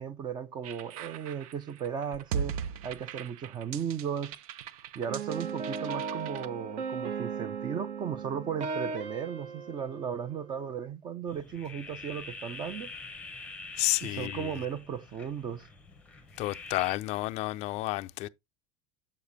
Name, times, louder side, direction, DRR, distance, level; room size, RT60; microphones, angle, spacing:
voice 1, 0.0-4.3 5.0-12.9 14.0-15.7, right 8 dB, 25° right, 0.5 m, -36 dB
sound 1, 0.6-6.5, right 7 dB, 85° right, 0.7 m, -39 dB
sound 2, 5.1-10.7, right 5 dB, 50° right, 1.1 m, -37 dB
sound 3, 11.3-17.0, left 3 dB, 5° left, 0.8 m, -45 dB
voice 2, 13.8-14.5 16.4-18.3, left 19 dB, 35° left, 0.4 m, -31 dB
7.3 x 6.7 x 2.7 m
supercardioid pair, 160°, 18 cm